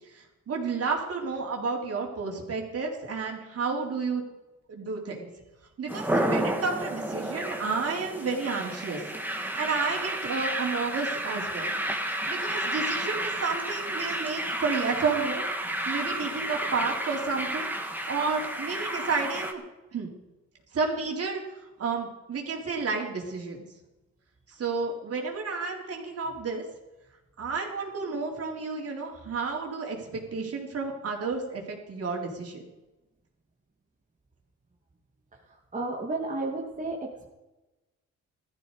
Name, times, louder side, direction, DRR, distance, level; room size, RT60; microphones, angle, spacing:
voice 1, 0.1-4.2 4.7-5.3 5.8-9.0 9.6-11.7 12.3-15.4 15.9-17.7 18.1-19.6 19.9-20.1 20.7-21.4 21.8-23.6 24.5-26.6 27.4-32.6, right 4 dB, 50° right, 0 dB, 4.1 m, -31 dB
sound 1, 5.9-19.5, right 1 dB, 5° right, 2.2 m, -31 dB
voice 2, 35.7-37.3, right 2 dB, 25° right, -1 dB, 2.4 m, -32 dB
17.0 x 14.0 x 5.0 m, 1.1 s
cardioid pair, 90°, 30 cm